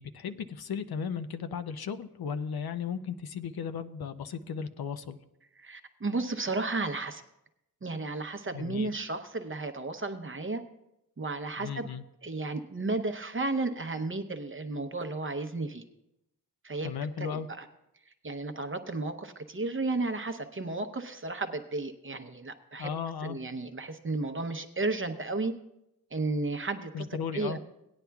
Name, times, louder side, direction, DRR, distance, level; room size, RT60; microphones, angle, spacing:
voice 1, 0.0-5.2 8.5-8.9 11.6-12.0 16.8-17.5 22.8-23.4 26.9-27.6, left 6 dB, 75° left, 10 dB, 0.6 m, -35 dB
voice 2, 5.6-7.2 7.8-10.6 11.2-11.9 12.2-15.8 16.6-16.9 17.2-17.6 18.2-22.9 23.2-25.5 26.1-27.1 27.3-27.6, right 3 dB, 35° right, 7 dB, 0.8 m, -33 dB
18.5 x 9.7 x 2.3 m, 0.86 s
wide cardioid pair, 95°, 38 cm